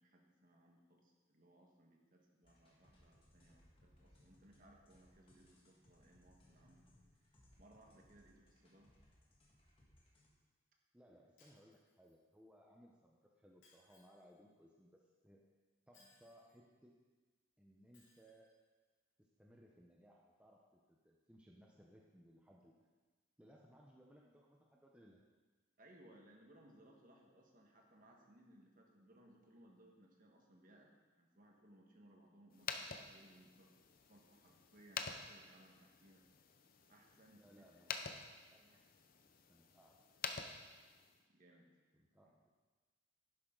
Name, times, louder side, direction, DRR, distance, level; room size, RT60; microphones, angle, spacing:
voice 1, 0.0-6.9 7.6-8.9 16.0-16.1 25.8-33.7 34.1-36.2 36.9-37.6 38.7-38.8 41.3-41.7 42.2-42.3, right 1 dB, 40° right, 0 dB, 1.6 m, -65 dB
sound 1, 2.4-10.3, left 1 dB, 25° left, 1.8 m, -69 dB
voice 2, 10.9-15.4 15.9-16.9 17.6-18.5 19.4-22.8 23.4-25.2 37.3-37.9 38.5-38.8 39.5-40.0 41.9-42.5, equal, 5° right, -2 dB, 0.8 m, -64 dB
Shatter, 11.4-12.4 13.6-14.4 15.9-16.6 17.9-18.5, left 3 dB, 60° left, 3.3 m, -70 dB
sound 2, 32.5-41.2, left 5 dB, 45° left, 0.7 m, -49 dB
10.5 x 10.5 x 3.9 m, 1.3 s
head